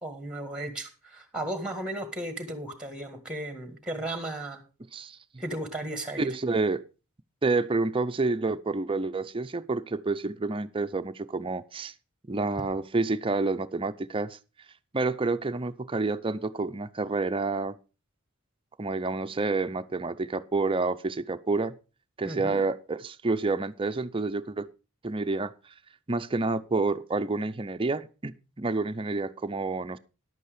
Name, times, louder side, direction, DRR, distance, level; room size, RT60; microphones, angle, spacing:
voice 1, 0.0-4.6 5.4-6.3 22.2-22.6, right 1 dB, 5° right, 1.6 m, -35 dB
voice 2, 4.9-5.4 6.2-6.9 7.4-11.9 12.3-14.4 14.9-17.8 18.8-21.7 22.2-24.7 25.0-25.5 26.1-30.0, right 3 dB, 25° right, 0.6 m, -29 dB
11.0 x 8.4 x 4.9 m
head